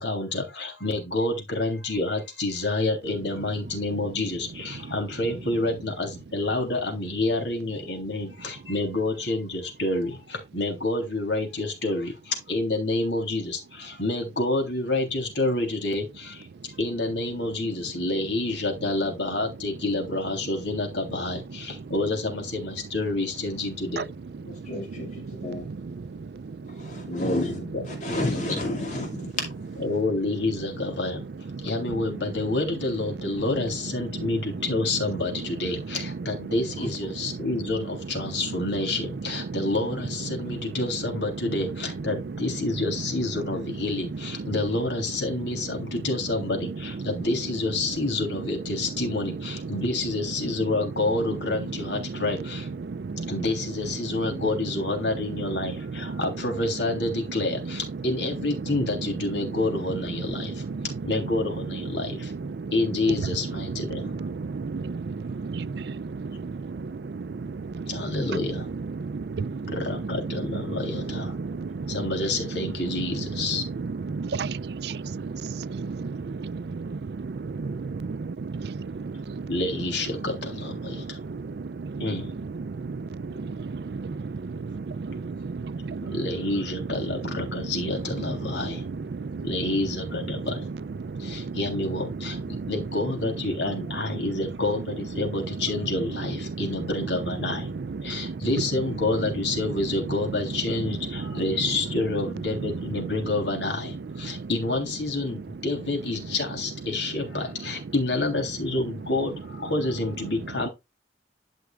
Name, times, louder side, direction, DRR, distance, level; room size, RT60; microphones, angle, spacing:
voice 1, 0.0-24.0 27.1-28.6 29.8-31.2 31.6-52.7 53.3-60.6 61.0-62.3 62.7-64.1 67.9-68.7 69.7-71.3 71.9-73.6 79.5-81.2 82.0-82.3 86.0-88.8 89.4-90.7 91.2-97.7 98.0-110.7, left 2 dB, 85° left, 3.3 m, -28 dB
voice 2, 24.5-25.7 26.8-27.5 27.9-29.3 36.8-36.9, left 2 dB, 45° left, 2.3 m, -31 dB
voice 3, 64.4-65.1 65.4-65.9 66.2-66.5 67.1-67.3 67.7-67.8 69.0-69.7 71.4-71.9 74.1-77.0 77.3-78.7 82.9-83.0 83.6-84.1 84.4-85.6 85.9-86.1 89.1-89.4 91.1-91.2 92.5-92.6 98.2-98.3, right 4 dB, 65° right, 0.4 m, -33 dB
11.5 x 6.0 x 2.4 m
head